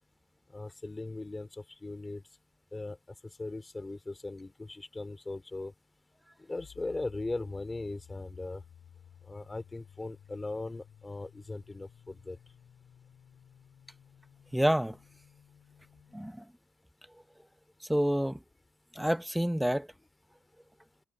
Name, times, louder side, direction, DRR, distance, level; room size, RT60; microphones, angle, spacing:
voice 1, 0.5-2.2 2.7-3.0 3.4-5.7 6.4-8.6 9.3-12.4, left 2 dB, 20° left, 2.9 m, -39 dB
sound 1, 6.6-16.3, left 9 dB, 65° left, 4.5 m, -56 dB
voice 2, 14.5-15.0 16.1-16.4 17.9-18.4 19.0-19.9, equal, 5° right, 0.9 m, -28 dB
cardioid pair, 90°, 0 cm